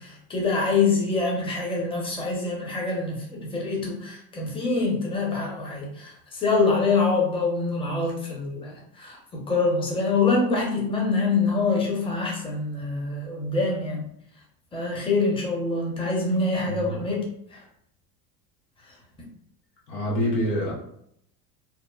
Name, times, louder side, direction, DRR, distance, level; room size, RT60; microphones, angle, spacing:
voice 1, 0.0-14.0 14.7-17.3 17.5-17.6, left 3 dB, 10° left, -2 dB, 0.7 m, -25 dB
voice 2, 16.7-17.0 19.9-20.7, equal, 85° left, -4 dB, 1.1 m, -26 dB
2.8 x 2.1 x 2.2 m, 0.70 s
hypercardioid pair, 85°, 49 cm